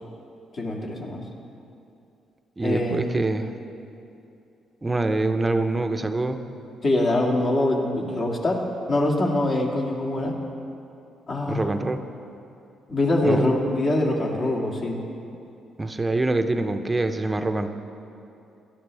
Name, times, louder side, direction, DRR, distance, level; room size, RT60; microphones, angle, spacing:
voice 1, 0.5-1.2 2.6-3.1 6.8-8.6 8.9-10.3 11.3-11.7 12.9-15.0, left 1 dB, 45° left, 0 dB, 2.1 m, -23 dB
voice 2, 2.6-3.5 4.8-6.4 11.5-12.0 13.2-13.4 15.8-17.7, right 2 dB, 20° right, 7 dB, 0.7 m, -25 dB
17.5 x 11.5 x 3.4 m, 2.7 s
cardioid pair, 90°, 0 cm